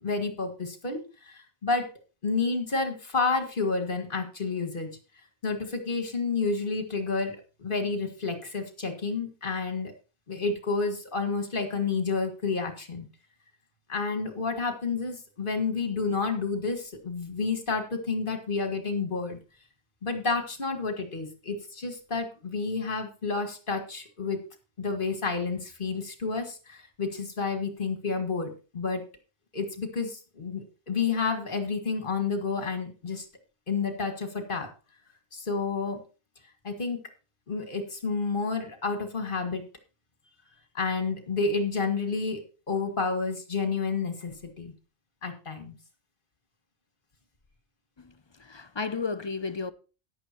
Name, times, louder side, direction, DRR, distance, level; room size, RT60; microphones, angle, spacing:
voice 1, 0.0-1.9 2.2-4.9 5.4-9.9 10.3-13.1 13.9-19.4 20.0-24.4 24.8-29.0 29.5-33.3 33.7-34.7 35.3-36.0 36.6-37.0 37.5-39.6 40.7-44.7 45.2-45.8, left 4 dB, 50° left, 2.1 m, -30 dB
voice 2, 48.4-49.7, left 4 dB, 35° left, 0.5 m, -33 dB
14.0 x 10.5 x 3.0 m
omnidirectional pair, 1.2 m